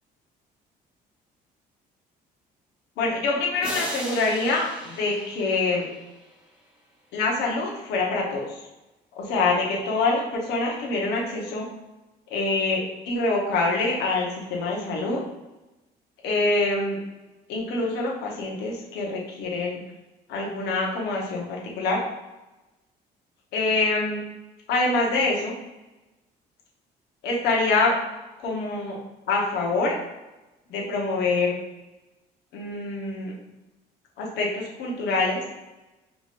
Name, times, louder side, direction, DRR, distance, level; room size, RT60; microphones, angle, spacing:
voice 1, 3.0-5.9 7.1-8.6 9.1-11.7 12.3-15.2 16.2-17.0 17.5-19.8 20.3-22.0 23.5-24.2 24.7-25.5 27.2-28.0 28.4-29.0 29.3-30.0 30.7-31.6 32.5-33.3 34.2-35.4, left 3 dB, 80° left, -2 dB, 1.1 m, -25 dB
sound 1, 3.6-6.5, right 1 dB, 5° right, 1.0 m, -37 dB
4.9 x 3.4 x 2.5 m, 1.0 s
cardioid pair, 110°, 17 cm